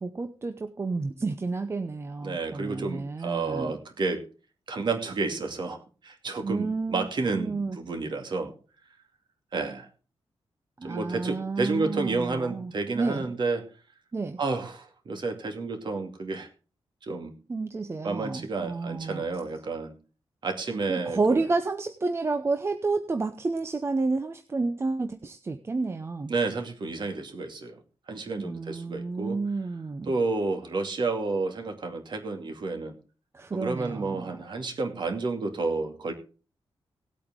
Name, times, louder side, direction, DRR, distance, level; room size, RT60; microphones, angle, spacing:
voice 1, 0.0-3.7 6.4-7.1 7.3-7.8 10.8-13.3 14.1-14.4 17.5-19.2 20.9-26.3 28.4-30.1 33.3-34.4, right 3 dB, 25° right, 8 dB, 0.7 m, -30 dB
voice 2, 2.2-4.2 4.7-5.8 6.0-8.5 9.5-9.9 10.8-13.6 14.4-16.5 17.0-17.3 18.0-19.9 20.4-21.4 26.3-27.8 28.1-29.4 30.1-32.9 33.5-36.1, right 3 dB, 50° right, 5 dB, 2.4 m, -30 dB
18.5 x 8.5 x 3.7 m, 0.36 s
wide cardioid pair, 170°, 10 cm